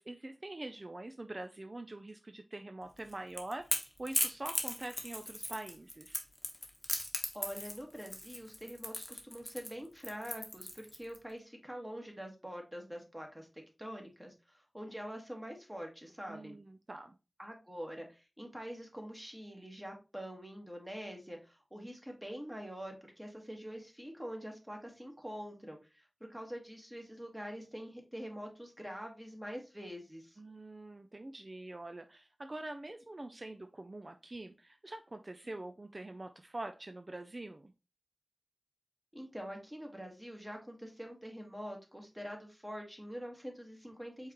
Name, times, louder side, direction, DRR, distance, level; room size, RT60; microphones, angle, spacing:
voice 1, 0.0-6.2 16.3-17.1 30.4-37.7, right 2 dB, 40° right, 7 dB, 0.4 m, -45 dB
Crackle / Crack, 3.0-11.2, left 1 dB, 20° left, 1.0 m, -37 dB
voice 2, 7.3-13.5 13.8-16.6 17.4-26.0 26.3-30.4 39.1-44.3, equal, 10° right, 2 dB, 1.5 m, -45 dB
4.6 x 3.6 x 2.9 m, 0.29 s
wide cardioid pair, 55°, 0 cm